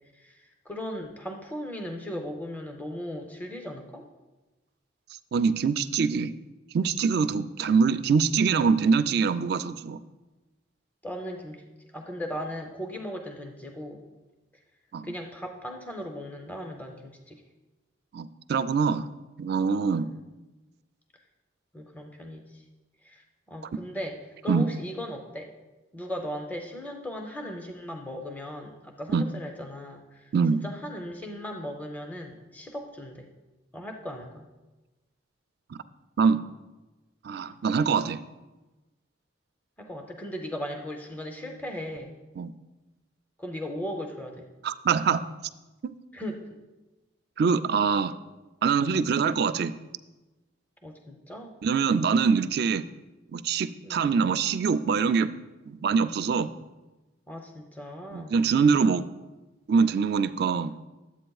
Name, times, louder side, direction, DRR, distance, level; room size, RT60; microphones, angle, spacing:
voice 1, 0.7-4.1 11.0-11.7 11.9-14.0 15.0-17.4 19.9-20.2 21.7-22.6 23.0-23.2 23.5-25.5 25.9-30.3 30.6-33.3 33.7-34.5 39.8-42.2 43.4-44.5 46.1-46.6 50.8-51.6 53.8-54.1 57.3-58.4, equal, 10° left, 3 dB, 0.6 m, -37 dB
voice 2, 5.3-6.3 6.7-10.0 14.9-15.1 18.1-19.1 19.4-20.1 24.5-24.7 29.1-29.2 30.3-30.6 36.2-36.4 37.2-38.2 42.4-42.5 44.6-45.2 45.8-45.9 47.4-48.2 48.6-49.7 51.6-52.9 53.3-55.3 55.7-56.5 58.1-59.1 59.7-60.7, right 5 dB, 55° right, 12 dB, 0.3 m, -24 dB
13.0 x 8.1 x 2.3 m, 1.1 s
head